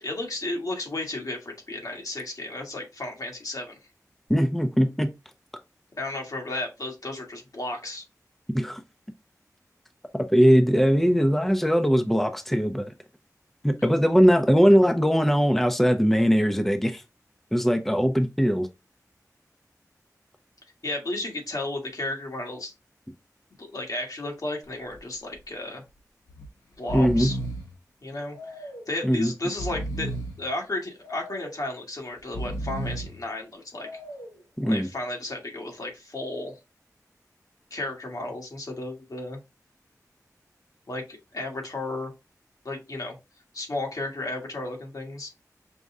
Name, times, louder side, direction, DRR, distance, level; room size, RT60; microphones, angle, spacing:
voice 1, 0.0-3.8 6.0-8.0 20.8-22.7 23.6-25.8 26.8-27.4 28.0-33.9 34.6-36.6 37.7-39.4 40.9-41.0 41.3-42.1 42.6-43.1 43.5-45.3, left 2 dB, 65° left, 1.6 m, -33 dB
voice 2, 4.3-5.1 8.5-8.8 10.3-12.9 13.6-17.0 17.5-18.7 26.9-27.3 29.0-29.3 34.6-34.9, equal, 5° left, 0.6 m, -20 dB
Breathing, 24.6-25.0 25.3-25.4 26.3-26.5 26.7-27.7 28.3-29.0 29.4-30.4 31.0-31.7 32.2-33.2 33.8-34.4, right 1 dB, 80° left, 1.5 m, -34 dB
5.3 x 2.3 x 3.6 m
cardioid pair, 45°, 7 cm